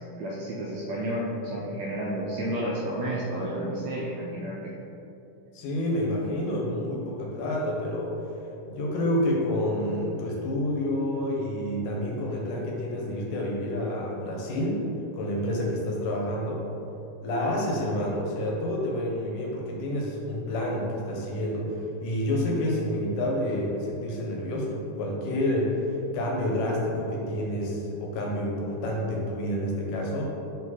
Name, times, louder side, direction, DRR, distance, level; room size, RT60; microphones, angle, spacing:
voice 1, 0.0-4.7, right 1 dB, 80° right, -4 dB, 1.6 m, -31 dB
voice 2, 5.5-8.1 8.7-14.9 15.2-16.6 17.2-25.8 26.1-30.2, left 1 dB, 80° left, -1 dB, 2.5 m, -29 dB
5.2 x 4.6 x 4.1 m, 2.8 s
omnidirectional pair, 3.7 m